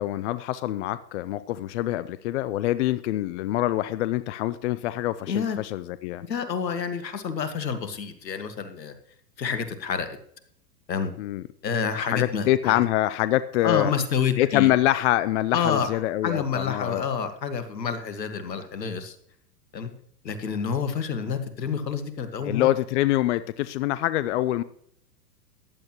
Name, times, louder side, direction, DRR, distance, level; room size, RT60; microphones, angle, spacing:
voice 1, 0.0-6.2 11.2-11.4 12.1-14.0 14.4-17.0 22.4-24.6, left 15 dB, 45° left, 15 dB, 0.5 m, -25 dB
voice 2, 5.3-5.6 6.2-8.9 9.4-10.1 10.9-11.1 11.6-12.8 13.6-14.7 15.5-15.9 16.2-19.2 19.7-19.9 20.2-22.7, left 6 dB, 80° left, 9 dB, 1.7 m, -28 dB
15.0 x 10.5 x 3.0 m, 0.66 s
hypercardioid pair, 110°, 49 cm